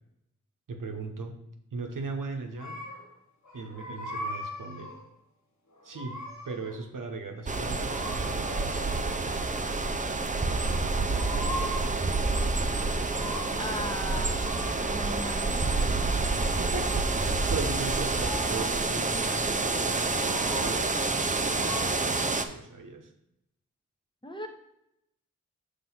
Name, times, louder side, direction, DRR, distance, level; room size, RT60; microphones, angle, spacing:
voice 1, 0.7-1.4 1.7-2.8 3.5-4.9 5.8-6.2 6.4-8.9 13.3-13.4 16.6-23.1, right 4 dB, 85° right, 4 dB, 0.9 m, -38 dB
sound 1, 2.6-3.1 3.4-5.1 5.7-6.9 7.9-9.2 10.8-12.0 12.5-13.8 14.2-15.5 17.4-19.0 19.8-21.0 21.5-21.9, left 1 dB, 60° left, 1.2 m, -41 dB
sound 2, 7.5-22.4, right 3 dB, 25° right, 0.5 m, -28 dB
voice 2, 13.6-14.4 14.6-16.1 24.2-24.5, equal, 15° left, 4 dB, 1.0 m, -38 dB
5.8 x 3.4 x 5.6 m, 0.80 s
cardioid pair, 45°, 31 cm